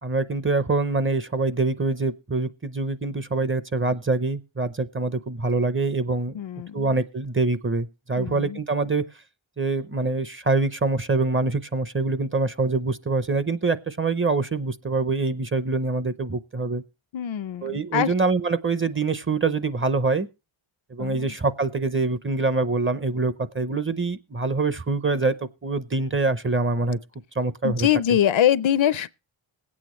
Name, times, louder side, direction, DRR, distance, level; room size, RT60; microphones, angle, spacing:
voice 1, 0.0-6.4 6.7-9.0 9.6-16.8 17.6-20.3 20.9-25.3 25.6-27.0 27.4-27.9, right 3 dB, 25° right, 0.7 m, -25 dB
voice 2, 6.3-6.9 8.2-8.6 17.1-18.1 21.0-21.3 27.6-29.1, left 10 dB, 65° left, 0.6 m, -23 dB
21.5 x 8.6 x 3.1 m
wide cardioid pair, 80°, 50 cm